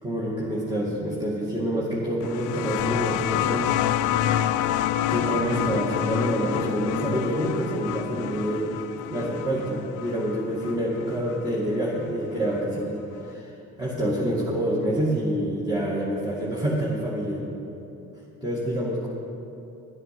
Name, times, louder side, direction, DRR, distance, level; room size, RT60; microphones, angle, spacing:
voice 1, 0.0-3.7 4.6-4.8 5.1-8.7 9.1-13.5 13.8-17.4 18.4-19.1, right 1 dB, 15° right, -6 dB, 2.3 m, -27 dB
sound 1, 2.2-11.5 12.6-12.7, left 11 dB, 90° left, 0.5 m, -28 dB
11.5 x 9.9 x 6.0 m, 2.8 s
cardioid pair, 90°, 30 cm